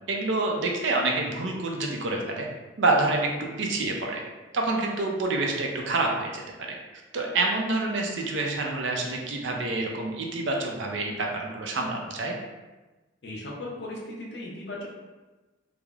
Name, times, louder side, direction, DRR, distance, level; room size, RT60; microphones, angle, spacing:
voice 1, 0.1-2.5 2.8-4.2 4.5-6.4 7.1-12.3, right 2 dB, 75° right, 1 dB, 0.4 m, -27 dB
voice 2, 13.2-14.9, left 1 dB, 60° left, -4 dB, 0.5 m, -37 dB
3.1 x 2.0 x 2.3 m, 1.2 s
head